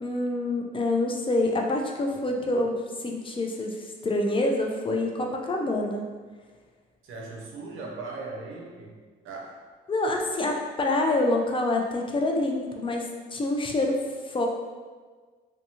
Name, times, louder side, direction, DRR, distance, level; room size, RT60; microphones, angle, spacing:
voice 1, 0.0-2.7 3.0-6.0 9.9-14.5, left 2 dB, 25° left, 1 dB, 0.4 m, -26 dB
voice 2, 2.1-2.5 7.0-9.0 9.2-9.6, right 3 dB, 85° right, -1 dB, 0.5 m, -39 dB
2.7 x 2.2 x 2.7 m, 1.5 s
cardioid pair, 90°, 20 cm